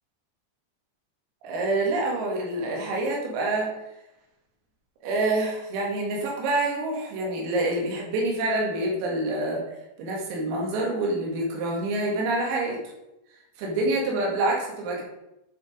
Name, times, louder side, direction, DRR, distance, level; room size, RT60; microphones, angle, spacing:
voice 1, 1.4-3.7 5.0-9.6 10.0-12.8 13.6-15.0, right 2 dB, 85° right, -1 dB, 4.8 m, -26 dB
10.5 x 5.1 x 5.1 m, 0.90 s
omnidirectional pair, 5.9 m